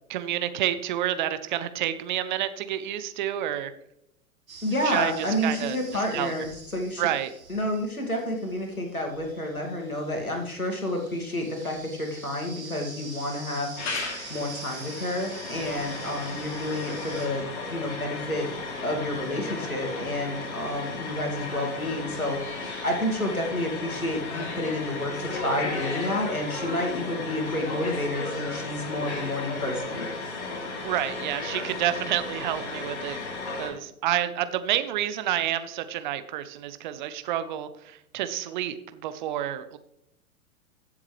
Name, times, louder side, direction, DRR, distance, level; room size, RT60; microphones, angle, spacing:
voice 1, 0.1-3.7 4.8-5.8 6.1-6.3 7.0-7.3 30.8-33.2 33.6-39.8, right 12 dB, 35° right, 12 dB, 0.7 m, -29 dB
sound 1, 4.5-17.3, right 3 dB, 75° right, 2.5 m, -45 dB
voice 2, 4.6-7.1 7.5-13.7 14.3-18.5 18.8-22.4 22.8-30.1, left 1 dB, 85° left, 2 dB, 2.4 m, -30 dB
sound 2, 13.8-33.7, left 3 dB, 50° left, 2.8 m, -35 dB
15.0 x 7.3 x 3.2 m, 0.79 s
figure-of-eight pair, 105°, 42 cm